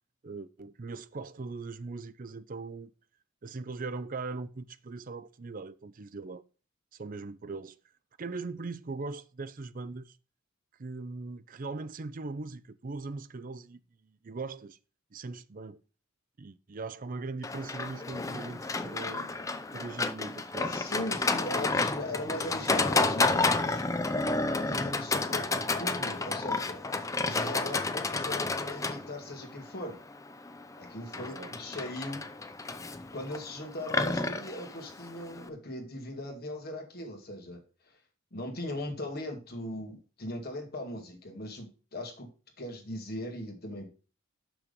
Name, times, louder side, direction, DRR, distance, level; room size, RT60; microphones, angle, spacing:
voice 1, 0.2-2.9 3.4-6.4 6.9-7.8 8.2-10.2 10.8-14.8 15.1-15.8 16.4-20.9 21.3-21.4 31.1-31.5, right 3 dB, 40° right, 0.5 m, -40 dB
Livestock farm animals working animals, 17.4-35.5, left 3 dB, 15° left, 0.5 m, -31 dB
voice 2, 20.7-23.8 24.7-26.8 27.2-30.0 30.8-32.3 33.1-37.6 38.3-42.3 42.6-43.9, left 1 dB, 45° left, 2.1 m, -39 dB
6.2 x 6.1 x 5.2 m
head